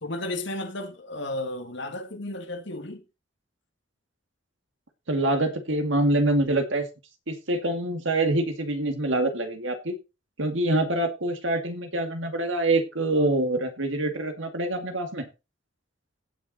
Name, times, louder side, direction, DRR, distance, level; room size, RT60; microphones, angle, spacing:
voice 1, 0.0-3.0, left 1 dB, 65° left, 1.9 m, -33 dB
voice 2, 5.1-6.9 7.3-10.0 10.4-15.3, right 2 dB, 75° right, 2.2 m, -25 dB
17.0 x 6.1 x 4.1 m
head